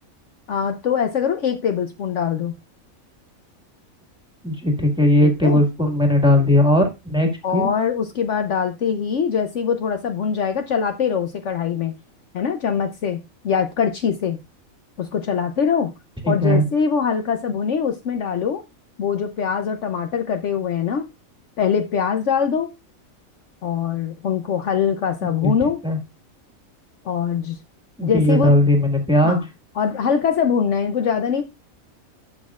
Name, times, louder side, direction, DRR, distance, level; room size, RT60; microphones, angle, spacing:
voice 1, 0.5-2.5 5.2-5.6 7.4-11.9 12.3-14.4 15.0-15.9 16.3-18.6 19.0-21.1 21.6-22.7 23.6-25.8 27.0-27.6 28.0-28.5 29.2-29.5 29.8-31.4, left 7 dB, 65° left, 1.0 m, -23 dB
voice 2, 4.4-7.7 16.2-16.6 25.4-25.5 25.8-26.0 28.0-29.4, left 1 dB, 5° right, 1.7 m, -18 dB
11.0 x 6.4 x 2.4 m
omnidirectional pair, 1.4 m